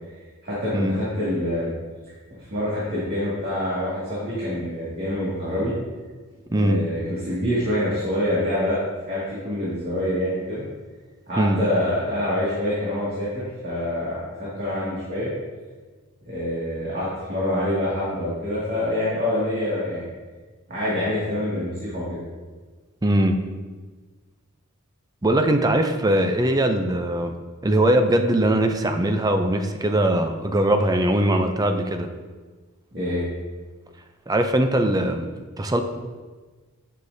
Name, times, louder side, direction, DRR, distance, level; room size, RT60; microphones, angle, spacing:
voice 1, 0.4-1.7 2.5-5.7 6.6-8.8 9.1-10.7 11.3-14.2 14.6-15.3 16.3-20.0 20.7-22.2 32.9-33.3, left 1 dB, 45° right, -10 dB, 2.1 m, -26 dB
voice 2, 6.5-6.8 11.4-11.6 23.0-23.4 25.2-27.3 27.6-32.1 34.3-35.2 35.6-35.8, right 1 dB, 15° right, 6 dB, 0.5 m, -21 dB
9.7 x 6.6 x 2.7 m, 1.4 s
head